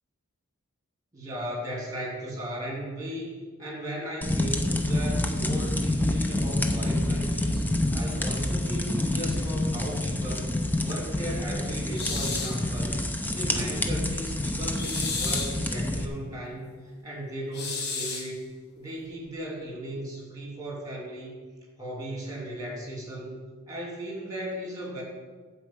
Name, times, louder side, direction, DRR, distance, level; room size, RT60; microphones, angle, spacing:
voice 1, 1.1-7.7 7.9-10.5 10.8-13.0 13.3-16.7 17.0-18.5 18.8-21.4 21.8-23.4 23.7-25.0, right 1 dB, 15° right, -2 dB, 2.9 m, -36 dB
sound 1, 4.2-16.1, left 1 dB, 10° left, 0.6 m, -28 dB
sound 2, 11.9-12.6 14.8-15.6 17.5-18.3, left 4 dB, 50° left, 1.4 m, -32 dB
12.0 x 4.6 x 7.9 m, 1.4 s
head